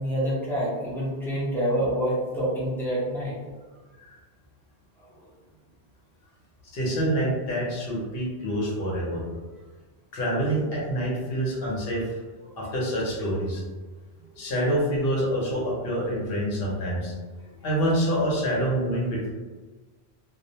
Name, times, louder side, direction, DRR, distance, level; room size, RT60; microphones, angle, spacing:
voice 1, 0.0-3.3, equal, ahead, -8 dB, 0.6 m, -27 dB
voice 2, 6.7-9.2 10.1-12.2 12.6-13.6 14.4-17.1 17.6-19.3, right 1 dB, 65° left, -4 dB, 1.0 m, -26 dB
2.4 x 2.1 x 2.7 m, 1.3 s
omnidirectional pair, 1.1 m